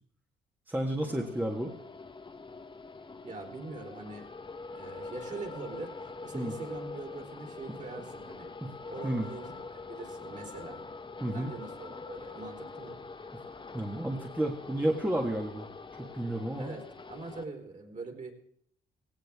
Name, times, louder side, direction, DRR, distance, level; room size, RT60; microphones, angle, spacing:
voice 1, 0.7-1.7 6.3-6.5 8.6-8.7 9.0-9.3 11.2-11.5 13.7-15.7 16.0-16.7, right 1 dB, 10° right, 0 dB, 1.7 m, -31 dB
sound 1, 1.2-17.4, left 3 dB, 25° left, 1.1 m, -44 dB
voice 2, 3.2-4.3 4.7-8.5 8.9-10.8 11.3-13.0 16.6-18.3, right 3 dB, 40° right, 1 dB, 3.6 m, -43 dB
17.5 x 17.0 x 3.6 m, 0.67 s
cardioid pair, 90°, 20 cm